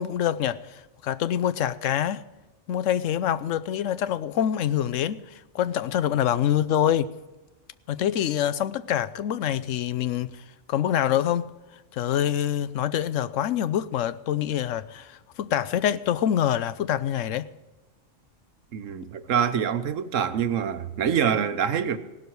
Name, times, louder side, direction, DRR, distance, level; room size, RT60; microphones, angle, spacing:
voice 1, 0.0-2.2 2.7-7.1 7.9-10.4 10.7-11.5 11.9-17.5, left 10 dB, 85° left, 1.0 m, -25 dB
voice 2, 18.7-22.0, right 8 dB, 90° right, 1.3 m, -25 dB
17.0 x 12.0 x 4.6 m
omnidirectional pair, 1.3 m